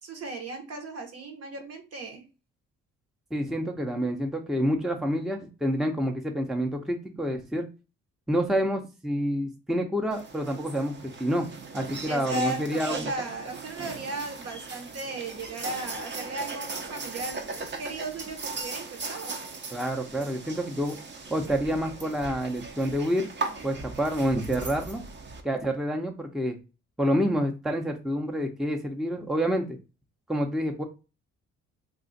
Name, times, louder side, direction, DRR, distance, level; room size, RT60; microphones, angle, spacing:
voice 1, 0.0-2.3 12.0-17.5 17.8-19.4, right 2 dB, 55° right, 1.0 m, -36 dB
voice 2, 3.3-7.7 8.3-11.5 11.7-13.1 19.7-21.0 21.3-23.3 23.6-25.0 25.4-26.6 27.0-29.8 30.3-30.8, equal, ahead, 0.6 m, -28 dB
sound 1, 10.1-25.4, right 3 dB, 35° right, 0.7 m, -38 dB
2.5 x 2.4 x 4.0 m
cardioid pair, 90°, 30 cm